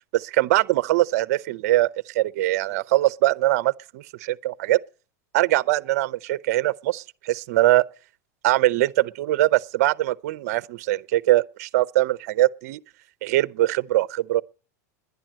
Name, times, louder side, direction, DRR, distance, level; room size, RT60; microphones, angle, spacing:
voice 1, 0.1-1.9 2.1-4.8 5.3-7.8 8.4-12.8 13.2-14.4, right 16 dB, 65° right, 0.6 m, -22 dB
11.0 x 10.5 x 7.4 m
supercardioid pair, 125°, 9 cm